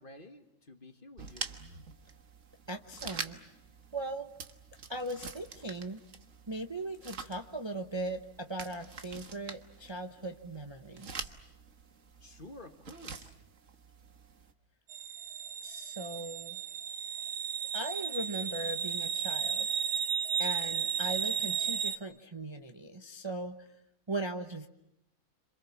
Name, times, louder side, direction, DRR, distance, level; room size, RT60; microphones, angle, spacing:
voice 1, 0.0-1.6 12.2-13.4, left 1 dB, 35° left, 6 dB, 1.9 m, -51 dB
sound 1, 1.2-14.5, right 5 dB, 60° right, 1.7 m, -46 dB
voice 2, 2.7-3.4 3.9-4.3 4.9-6.0 6.5-11.3 15.6-16.6 17.7-19.8 20.4-23.7 24.1-24.7, right 2 dB, 20° right, 5 dB, 0.9 m, -39 dB
sound 2, 14.9-22.0, right 7 dB, 80° right, 1.8 m, -34 dB
28.0 x 27.0 x 7.3 m, 0.85 s
omnidirectional pair, 1.6 m